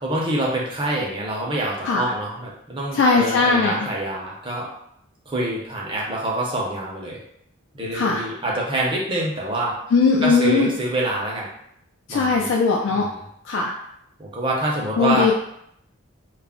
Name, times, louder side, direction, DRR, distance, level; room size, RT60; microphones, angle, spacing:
voice 1, 0.0-4.7 5.3-7.2 7.7-9.8 10.2-11.5 12.1-12.5 12.9-13.2 14.2-15.3, right 1 dB, 25° right, -3 dB, 0.6 m, -26 dB
voice 2, 2.9-3.8 7.9-8.3 9.9-10.7 12.1-13.0 13.5-13.7 15.0-15.3, left 4 dB, 65° left, 0 dB, 0.3 m, -19 dB
2.3 x 2.0 x 3.5 m, 0.73 s
head